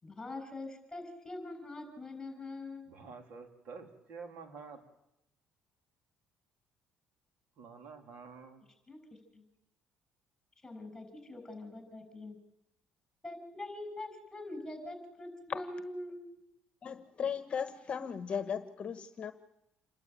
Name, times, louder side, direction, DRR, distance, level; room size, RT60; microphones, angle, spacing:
voice 1, 0.0-2.9 8.9-9.0 9.3-9.4 10.6-12.4 13.2-16.2, left 2 dB, 15° left, 8 dB, 6.6 m, -43 dB
voice 2, 2.9-4.8 7.6-8.6, right 5 dB, 70° right, 4 dB, 3.6 m, -49 dB
voice 3, 16.8-19.3, left 7 dB, 40° left, 10 dB, 1.2 m, -36 dB
28.0 x 12.0 x 9.1 m, 0.85 s
cardioid pair, 95°, 3 cm